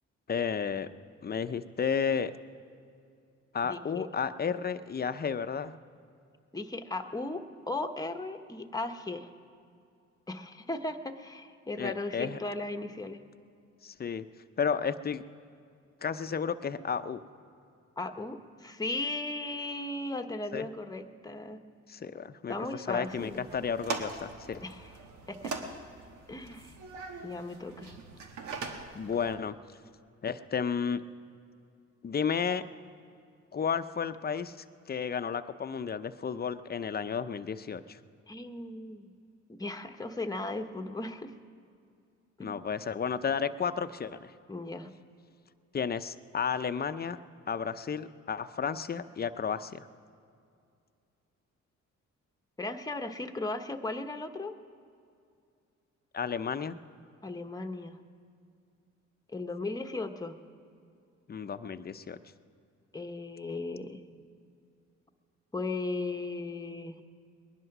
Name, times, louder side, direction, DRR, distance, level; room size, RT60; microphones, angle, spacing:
voice 1, 0.3-0.9 1.2-2.3 3.5-5.7 11.8-12.4 13.8-14.2 14.6-15.2 16.0-17.2 20.5-20.7 21.9-24.6 28.9-29.5 30.2-31.0 32.0-32.6 33.5-38.0 42.4-44.3 45.7-47.2 47.5-49.9 56.1-56.8 61.3-62.2, left 6 dB, 35° left, 11 dB, 0.7 m, -32 dB
voice 2, 3.6-4.1 6.5-9.3 10.3-13.2 18.0-21.6 22.5-23.4 24.6-24.9 25.3-25.5 26.3-26.7 27.2-28.0 38.3-39.1 39.5-41.3 42.4-42.6 44.5-44.9 52.6-54.5 57.2-58.0 59.3-60.4 62.9-64.0 65.5-67.0, left 2 dB, 15° left, 6 dB, 1.1 m, -36 dB
sound 1, 23.0-29.3, right 4 dB, 90° right, 1.5 m, -41 dB
20.5 x 11.0 x 6.0 m, 2.4 s
cardioid pair, 75°, 29 cm